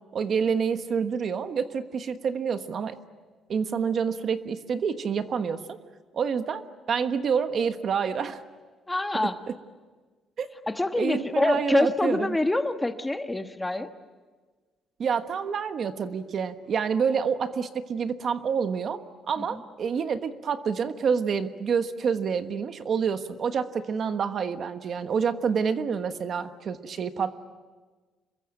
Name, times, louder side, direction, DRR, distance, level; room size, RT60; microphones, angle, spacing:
voice 1, 0.1-3.0 3.5-5.8 6.1-8.4 9.2-9.5 10.4-10.5 11.0-12.4 15.0-27.4, right 6 dB, 50° right, 9 dB, 1.3 m, -28 dB
voice 2, 8.9-9.4 10.7-13.9 19.4-19.6, left 2 dB, 10° left, 7 dB, 1.3 m, -26 dB
27.0 x 22.5 x 9.0 m, 1.4 s
cardioid pair, 125°, 0 cm